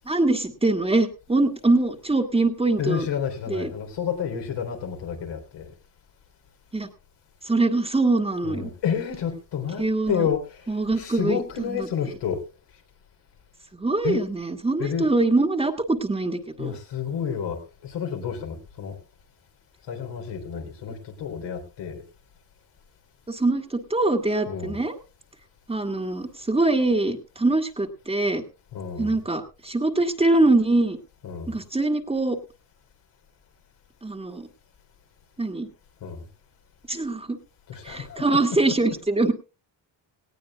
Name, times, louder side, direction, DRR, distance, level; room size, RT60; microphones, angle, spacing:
voice 1, 0.0-3.1 3.5-3.7 6.7-6.9 7.4-8.7 9.8-10.3 10.7-11.4 13.8-16.8 23.3-25.0 25.7-28.4 29.0-31.0 31.5-32.4 34.0-34.5 35.4-35.7 36.9-37.4 37.8-39.3, right 2 dB, 15° right, 1.5 m, -23 dB
voice 2, 2.8-5.7 8.4-12.4 14.0-14.2 14.8-15.1 16.6-19.0 19.9-22.0 24.5-24.8 28.7-29.2 31.2-31.6 36.0-36.2 37.7-38.4, left 7 dB, 90° left, 3.8 m, -30 dB
18.5 x 17.0 x 2.3 m
cardioid pair, 125°, 41 cm